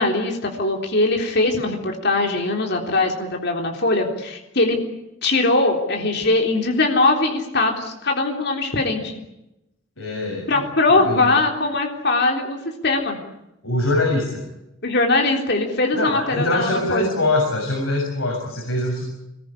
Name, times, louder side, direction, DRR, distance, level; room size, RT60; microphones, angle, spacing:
voice 1, 0.0-4.8 5.2-9.2 10.5-12.6 12.8-13.2 14.8-17.1, left 2 dB, 55° left, 2 dB, 3.7 m, -21 dB
voice 2, 10.0-10.7 10.9-11.3 13.6-14.5 15.9-19.0, left 2 dB, 85° left, -1 dB, 7.0 m, -23 dB
23.5 x 21.0 x 9.9 m, 0.88 s
head